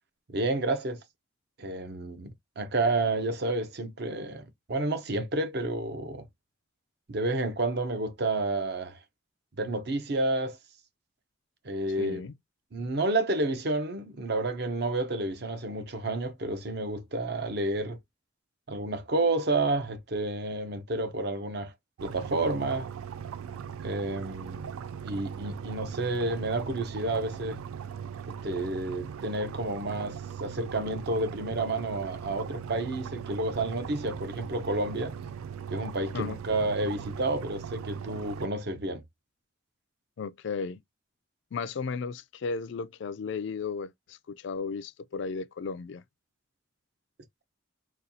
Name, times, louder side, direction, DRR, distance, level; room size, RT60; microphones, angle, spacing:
voice 1, 0.3-1.0 1.6-6.3 7.1-9.0 9.6-10.6 11.6-12.2 12.7-18.0 18.7-21.7 22.0-22.9 23.8-24.7 25.0-27.6 28.4-35.1 35.7-39.0, right 2 dB, 50° right, 0.7 m, -30 dB
voice 2, 12.0-12.3 36.1-36.3 40.2-40.8 41.5-46.0, left 5 dB, 60° left, 0.3 m, -35 dB
sound 1, 22.0-38.5, right 8 dB, 85° right, 0.3 m, -39 dB
4.1 x 2.3 x 2.6 m
head